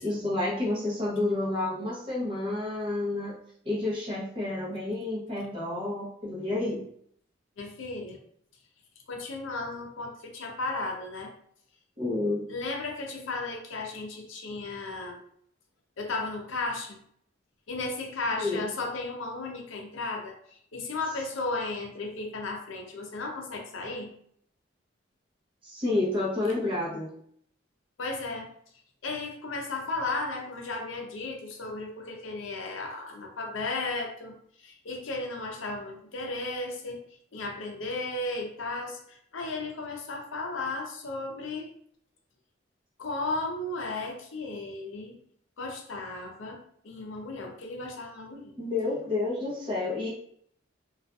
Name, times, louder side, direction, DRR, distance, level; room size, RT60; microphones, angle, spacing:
voice 1, 0.0-3.3 3.6-6.8 12.0-12.5 18.4-18.7 25.6-27.1 48.6-50.1, left 2 dB, 25° right, -7 dB, 0.8 m, -30 dB
voice 2, 7.6-8.2 9.1-11.3 12.5-15.2 16.0-17.0 17.7-20.3 20.7-24.1 28.0-28.5 29.0-34.4 34.6-37.0 37.3-41.7 43.0-45.2 45.6-48.5, left 2 dB, 75° left, 2 dB, 0.5 m, -35 dB
2.5 x 2.4 x 2.3 m, 0.65 s
head